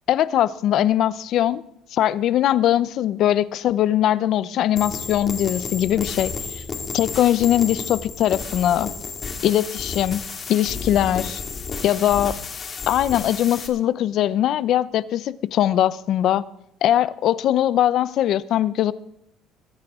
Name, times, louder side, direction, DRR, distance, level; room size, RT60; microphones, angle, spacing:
voice 1, 0.1-1.6 1.9-6.6 6.9-8.9 9.4-10.2 10.5-11.4 11.8-12.4 12.9-16.4 16.8-18.9, left 11 dB, 55° left, 0.6 m, -21 dB
sound 1, 4.8-13.7, left 4 dB, 30° left, 1.8 m, -32 dB
21.5 x 11.0 x 3.7 m
cardioid pair, 140°, 0 cm